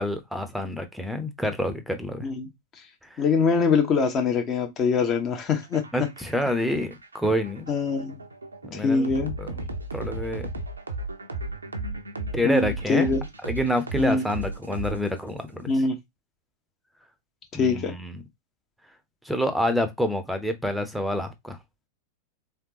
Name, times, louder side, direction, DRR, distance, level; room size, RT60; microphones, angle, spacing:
voice 1, 0.0-2.3 3.1-3.2 5.9-7.7 8.6-9.1 9.4-9.6 9.9-10.5 12.3-13.1 13.4-15.7 17.5-18.2 19.2-21.6, equal, ahead, 0.8 m, -27 dB
voice 2, 3.2-6.1 7.7-8.2 8.7-9.3 12.4-13.2 14.0-14.2 15.7-16.0 17.6-17.9, left 4 dB, 30° left, 1.0 m, -23 dB
sound 1, 5.6-15.4, right 2 dB, 75° right, 0.6 m, -35 dB
3.6 x 3.4 x 2.9 m
figure-of-eight pair, 90°, 0 cm